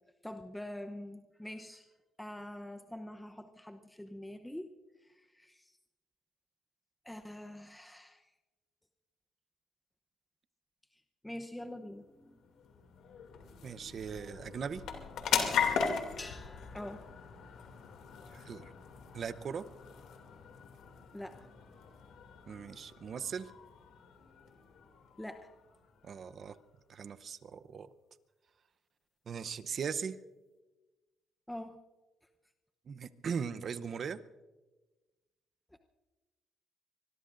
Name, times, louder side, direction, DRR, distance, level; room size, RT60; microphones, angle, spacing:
voice 1, 0.2-1.9 2.2-4.7 5.3-5.7 7.0-8.2 11.2-12.3 16.7-17.0 21.1-21.4 25.2-25.5 31.5-31.8 35.7-35.8, left 1 dB, 5° left, 5 dB, 0.9 m, -44 dB
sound 1, 11.9-26.7, left 7 dB, 80° left, 2.6 m, -39 dB
voice 2, 13.6-14.8 18.3-18.7 19.1-19.6 22.5-23.5 26.0-26.6 26.9-27.9 29.3-30.2 32.9-34.2, right 6 dB, 55° right, 11 dB, 0.8 m, -39 dB
sound 2, 16.2-18.6, left 3 dB, 30° left, 2.5 m, -53 dB
24.5 x 21.5 x 2.6 m, 1.2 s
cardioid pair, 90°, 0 cm